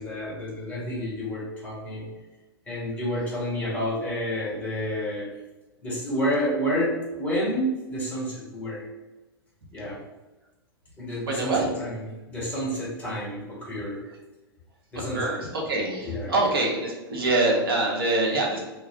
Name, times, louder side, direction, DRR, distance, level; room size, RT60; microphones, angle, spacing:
voice 1, 0.0-2.1 2.7-5.3 5.8-8.8 9.7-10.0 11.0-14.0 14.9-15.3 16.0-16.3, equal, 10° left, -6 dB, 1.2 m, -29 dB
voice 2, 11.2-11.7 15.1-18.6, right 2 dB, 65° right, -1 dB, 0.8 m, -25 dB
2.2 x 2.2 x 3.4 m, 1.1 s
figure-of-eight pair, 100°, 13 cm